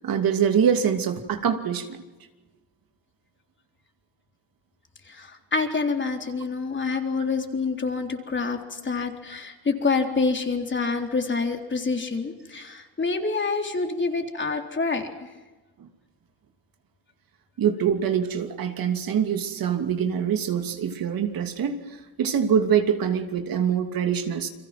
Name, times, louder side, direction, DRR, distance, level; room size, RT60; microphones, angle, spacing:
voice 1, 0.0-1.9 15.8-15.9 17.6-21.8 22.2-24.5, right 8 dB, 70° right, 6 dB, 2.8 m, -24 dB
voice 2, 5.1-15.1, left 4 dB, 30° left, 4 dB, 3.7 m, -27 dB
29.5 x 23.0 x 6.0 m, 1.2 s
cardioid pair, 105°, 37 cm